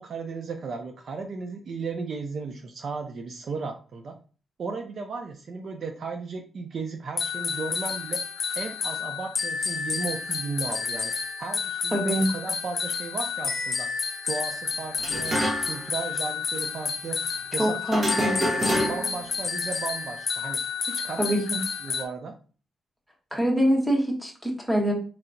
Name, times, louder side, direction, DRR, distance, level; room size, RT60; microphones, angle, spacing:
voice 1, 0.0-4.1 4.6-8.2 8.6-13.9 14.3-17.2 17.5-18.0 18.6-20.6 20.9-21.4 21.8-22.3, right 4 dB, 55° right, 4 dB, 0.5 m, -35 dB
sound 1, 7.2-22.1, left 5 dB, 50° left, 0.5 m, -30 dB
voice 2, 11.9-12.3 17.6-18.3 21.2-21.6 23.3-24.9, right 1 dB, 5° right, -1 dB, 1.2 m, -24 dB
Garbage can lid, 15.0-15.9 16.1-16.2 17.9-19.2, equal, 30° right, 1.1 m, -27 dB
4.5 x 2.8 x 2.6 m, 0.38 s
cardioid pair, 125°, 0 cm